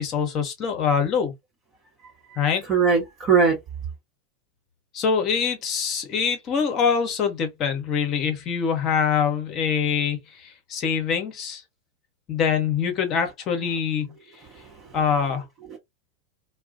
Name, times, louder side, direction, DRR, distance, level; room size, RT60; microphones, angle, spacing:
voice 1, 0.0-1.3 2.4-2.6 4.9-11.6 12.3-14.1 14.9-15.4, left 6 dB, 40° left, 0.9 m, -24 dB
voice 2, 2.3-3.6 15.7-15.8, right 5 dB, 30° right, 0.9 m, -21 dB
2.3 x 2.1 x 2.5 m
figure-of-eight pair, 85°, 0 cm